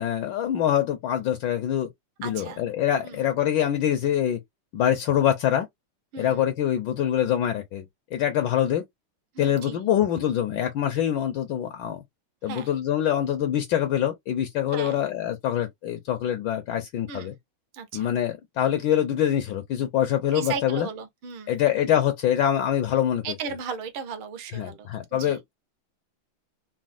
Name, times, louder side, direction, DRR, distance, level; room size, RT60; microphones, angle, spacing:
voice 1, 0.0-1.9 2.2-4.4 4.7-5.7 6.2-8.8 9.4-12.0 12.4-17.3 17.9-20.9 21.5-23.2 24.5-25.5, left 10 dB, 75° left, 1.1 m, -25 dB
voice 2, 2.2-2.6 3.0-3.2 6.1-6.4 9.3-9.8 12.4-12.7 14.7-15.0 17.1-17.3 17.7-18.1 20.3-21.5 23.2-25.4, right 6 dB, 70° right, 1.5 m, -36 dB
4.1 x 2.0 x 2.4 m
omnidirectional pair, 2.4 m